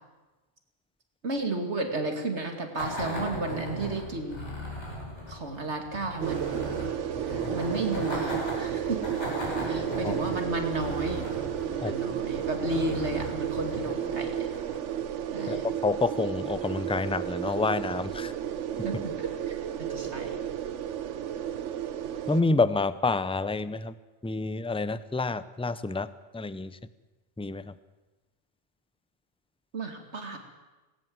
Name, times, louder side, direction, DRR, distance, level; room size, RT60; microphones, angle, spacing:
voice 1, 1.2-4.4 5.3-6.7 7.2-9.2 9.5-11.3 11.7-14.5 15.3-15.7 18.8-20.4 29.7-30.4, right 2 dB, 70° right, 4 dB, 2.7 m, -33 dB
sound 1, 2.8-14.9, left 1 dB, 75° left, 5.9 m, -38 dB
sound 2, 6.2-22.4, right 10 dB, 90° right, 1.1 m, -32 dB
voice 2, 15.5-18.3 18.8-18.9 22.3-23.9 24.2-26.8 27.4-27.7, left 3 dB, 10° left, 15 dB, 0.4 m, -28 dB
18.5 x 18.0 x 7.9 m, 1.1 s
omnidirectional pair, 1.2 m